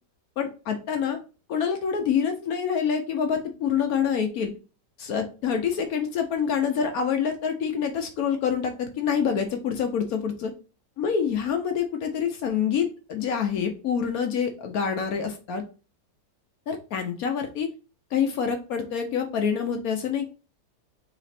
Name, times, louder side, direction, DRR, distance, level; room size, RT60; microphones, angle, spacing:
voice 1, 0.4-1.2 1.5-4.5 5.0-10.5 11.0-15.6 16.7-17.7 18.1-20.2, left 7 dB, 65° left, 5 dB, 1.0 m, -26 dB
4.0 x 3.0 x 4.2 m, 0.34 s
omnidirectional pair, 1.9 m